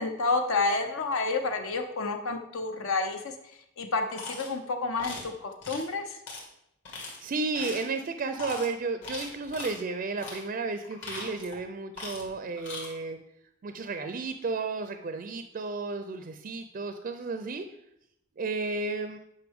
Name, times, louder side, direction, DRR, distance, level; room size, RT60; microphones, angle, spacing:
voice 1, 0.0-3.3 3.8-6.2, left 3 dB, 75° left, 5 dB, 0.7 m, -29 dB
sound 1, 4.1-4.5 5.0-5.3 5.6-5.9 6.3-6.4 6.8-7.2 7.5-7.9 8.3-8.7 9.0-9.8 10.2-10.4 10.8-11.6 11.9-12.3 12.6-12.9, left 3 dB, 60° left, 2.3 m, -40 dB
voice 2, 7.2-13.2 13.6-17.7 18.4-19.2, right 3 dB, 40° right, 8 dB, 0.4 m, -33 dB
9.2 x 5.4 x 3.5 m, 0.80 s
head